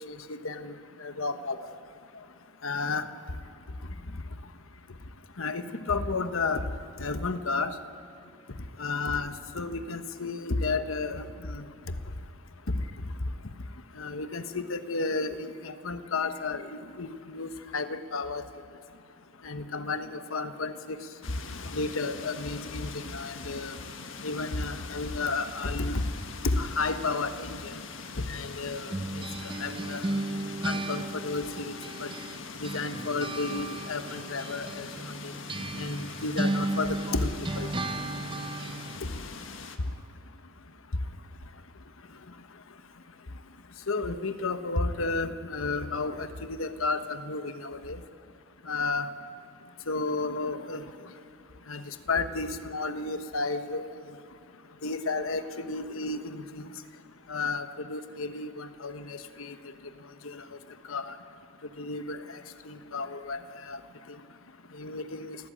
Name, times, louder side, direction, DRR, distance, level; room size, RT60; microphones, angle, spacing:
voice 1, 0.1-1.6 2.6-3.1 5.4-6.6 7.0-7.8 8.8-11.6 12.7-12.8 14.0-18.4 19.4-20.7 21.6-23.7 24.2-26.0 26.4-27.7 28.1-30.2 30.6-31.7 32.0-32.1 32.6-34.9 35.2-35.3 35.7-37.3 37.6-37.7 43.9-48.0 48.6-49.1 49.9-50.8 51.7-53.8 54.8-56.7 57.3-59.5 60.2-60.4 60.9-61.1 61.8-63.4 63.7-63.8 64.7-65.4, left 3 dB, 85° left, 10 dB, 1.1 m, -32 dB
sound 1, 21.2-39.8, left 4 dB, 70° left, 1.5 m, -43 dB
sound 2, 28.9-32.4 32.6-39.0, right 2 dB, 25° right, 0.6 m, -35 dB
30.0 x 13.5 x 8.7 m, 2.4 s
head